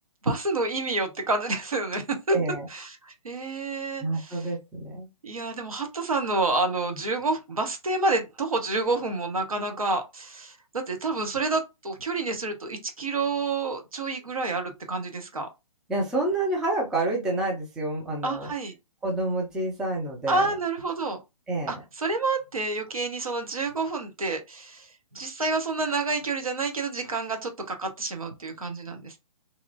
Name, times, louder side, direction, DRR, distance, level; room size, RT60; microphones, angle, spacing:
voice 1, 0.2-2.4 2.7-4.5 5.2-15.5 18.2-18.7 20.3-21.2 21.7-24.9 25.1-29.2, right 3 dB, 70° right, 0.9 m, -29 dB
voice 2, 2.3-2.7 4.0-5.1 15.9-18.5 19.0-20.4 21.5-21.8, right 2 dB, 5° right, 0.3 m, -28 dB
2.8 x 2.5 x 2.6 m
figure-of-eight pair, 125°, 19 cm